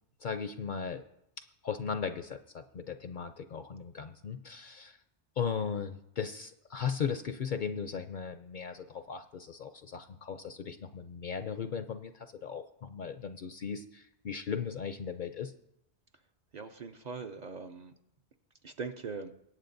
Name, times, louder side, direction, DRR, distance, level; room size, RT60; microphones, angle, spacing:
voice 1, 0.2-1.0 1.6-5.0 5.4-15.5, left 6 dB, 55° left, 9 dB, 0.6 m, -37 dB
voice 2, 16.5-17.9 18.6-19.3, right 5 dB, 50° right, 6 dB, 0.6 m, -41 dB
23.0 x 8.5 x 2.6 m, 0.81 s
omnidirectional pair, 1.2 m